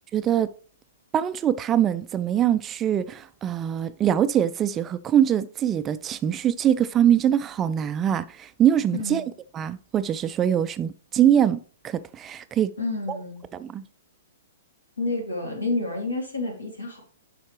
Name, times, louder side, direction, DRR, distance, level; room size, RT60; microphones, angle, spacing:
voice 1, 0.1-0.5 1.1-9.2 9.5-11.6 11.8-12.7 13.1-13.2 13.5-13.8, right 10 dB, 20° right, 0.3 m, -23 dB
voice 2, 8.9-9.3 12.8-13.4 15.0-17.0, left 2 dB, 75° left, 2.7 m, -29 dB
11.5 x 4.8 x 3.2 m
figure-of-eight pair, 110°, 0 cm